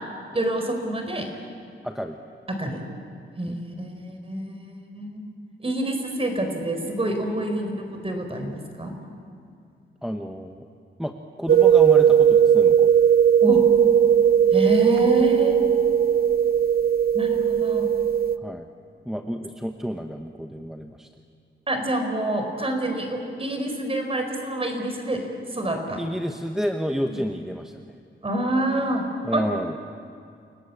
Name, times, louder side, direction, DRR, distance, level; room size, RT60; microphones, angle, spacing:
voice 1, 0.3-1.3 2.5-2.8 3.4-5.2 5.6-8.9 13.4-13.6 14.5-15.7 17.1-17.9 21.7-25.2 25.5-26.0 27.1-27.2 28.2-29.0 29.3-29.4, right 1 dB, 30° right, 4 dB, 4.6 m, -27 dB
voice 2, 1.8-2.2 3.5-3.6 10.0-10.7 11.0-12.9 18.4-18.7 19.0-21.1 26.0-27.9 29.2-29.8, equal, ahead, 4 dB, 1.0 m, -30 dB
sound 1, 11.5-18.4, right 8 dB, 50° right, 0.8 m, -18 dB
29.0 x 19.0 x 8.6 m, 2.4 s
wide cardioid pair, 120°, 20 cm